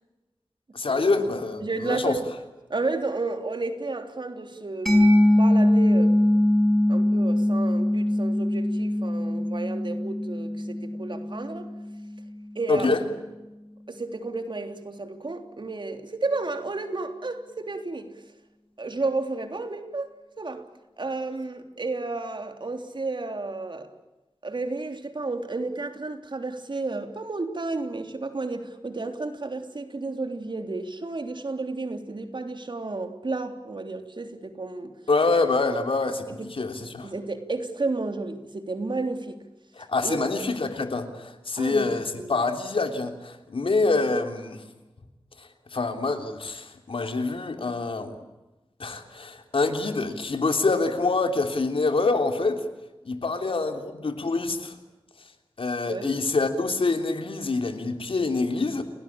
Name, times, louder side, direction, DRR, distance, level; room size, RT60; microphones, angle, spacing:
voice 1, 0.7-2.2 12.7-13.0 35.1-37.1 39.7-44.6 45.4-48.2 48.8-52.6 53.0-54.7 55.6-58.8, left 3 dB, 80° left, 6 dB, 3.2 m, -26 dB
voice 2, 1.6-2.3 2.7-6.2 6.9-11.7 12.6-12.9 13.9-18.1 18.8-20.7 21.0-23.9 24.4-34.9 36.3-36.5 37.0-39.4 40.0-40.3 41.6-41.9 42.2-42.4 55.8-56.1, right 3 dB, 60° right, 6 dB, 3.3 m, -32 dB
Mallet percussion, 4.9-12.2, left 1 dB, ahead, 7.7 m, -22 dB
30.0 x 18.5 x 8.8 m, 1.0 s
wide cardioid pair, 70°, 9 cm